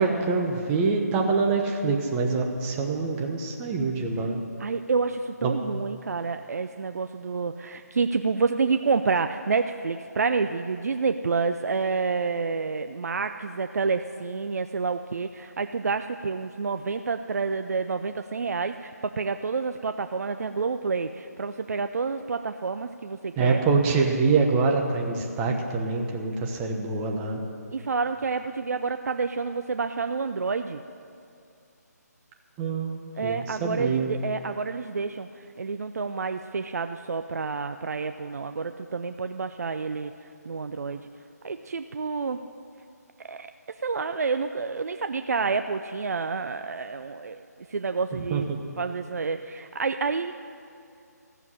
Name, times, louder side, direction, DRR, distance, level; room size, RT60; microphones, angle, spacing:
voice 1, 0.0-4.4 5.4-5.5 23.4-27.4 32.6-34.1 48.3-48.6, right 4 dB, 15° right, 1 dB, 1.1 m, -25 dB
voice 2, 4.6-23.6 27.7-30.8 33.1-41.1 41.4-42.4 43.2-43.5 43.8-47.4 47.7-48.5 48.8-50.3, right 4 dB, 65° right, 9 dB, 0.5 m, -29 dB
14.0 x 7.1 x 9.8 m, 2.5 s
figure-of-eight pair, 155°, 9 cm